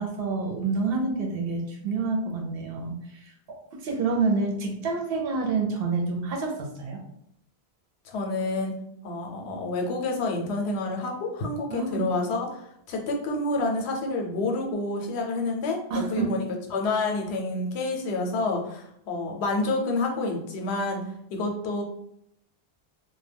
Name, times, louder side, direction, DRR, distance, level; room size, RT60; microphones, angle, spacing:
voice 1, 0.0-7.0 11.7-12.1 15.9-16.4, right 4 dB, 70° right, 2 dB, 0.8 m, -28 dB
voice 2, 8.0-8.7 9.0-21.0 21.3-21.8, left 2 dB, 85° left, 2 dB, 0.9 m, -28 dB
2.2 x 2.1 x 3.3 m, 0.73 s
omnidirectional pair, 1.1 m